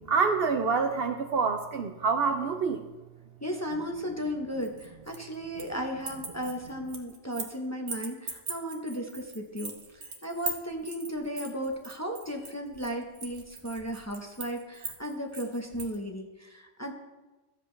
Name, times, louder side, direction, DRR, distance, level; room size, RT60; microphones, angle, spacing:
voice 1, 0.1-2.9, right 5 dB, 60° right, 6 dB, 0.7 m, -26 dB
voice 2, 3.4-16.9, equal, 15° left, 2 dB, 0.8 m, -35 dB
sound 1, 4.6-5.8 6.0-7.6 7.9-16.0, right 4 dB, 80° right, 1.5 m, -40 dB
13.5 x 7.6 x 3.2 m, 1.1 s
omnidirectional pair, 1.3 m